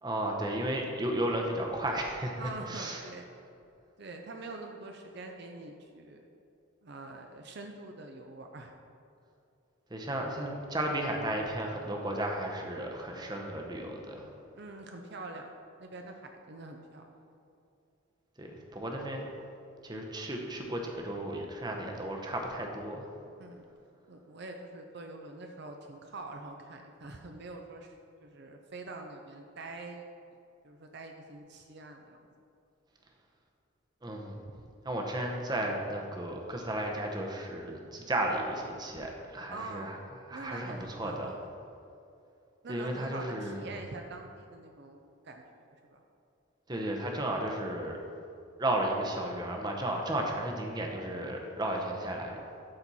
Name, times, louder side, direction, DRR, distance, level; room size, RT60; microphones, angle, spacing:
voice 1, 0.0-2.4 2.7-3.0 9.9-14.3 18.4-19.3 19.8-23.1 34.0-34.4 34.8-40.0 40.3-41.4 42.7-43.7 46.7-48.0 48.6-52.4, right 1 dB, 20° right, 1 dB, 0.7 m, -34 dB
voice 2, 2.4-3.3 4.0-6.3 6.8-8.7 14.5-15.5 15.8-17.1 23.4-23.7 24.1-27.9 28.2-30.1 30.6-32.2 39.5-39.9 40.3-41.4 42.6-45.4 45.7-46.0 50.3-50.5, right 2 dB, 50° right, 3 dB, 0.5 m, -45 dB
12.5 x 4.4 x 4.1 m, 2.6 s
head